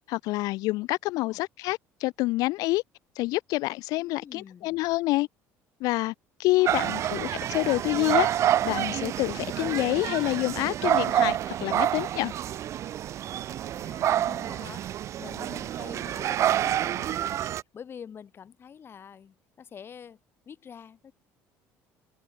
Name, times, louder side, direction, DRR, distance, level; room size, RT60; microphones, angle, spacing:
voice 1, 0.1-2.8 3.1-5.3 5.8-6.1 6.4-12.3, left 20 dB, 75° left, 1.3 m, -27 dB
voice 2, 4.0-4.8 6.5-7.0 13.7-14.9 15.2-20.2 20.4-21.1, left 7 dB, 40° left, 3.5 m, -47 dB
sound 1, 6.7-17.6, right 11 dB, 50° right, 0.5 m, -28 dB
open air
cardioid pair, 105°, 6 cm